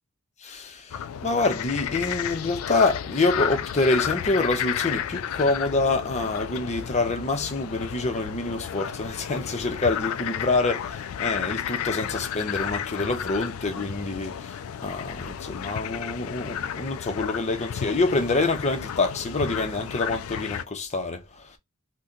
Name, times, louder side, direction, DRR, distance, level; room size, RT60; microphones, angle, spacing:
voice 1, 0.4-21.6, left 3 dB, 30° left, 0.7 m, -26 dB
sound 1, 0.9-20.6, left 9 dB, 75° left, 0.3 m, -32 dB
2.7 x 2.2 x 3.7 m
head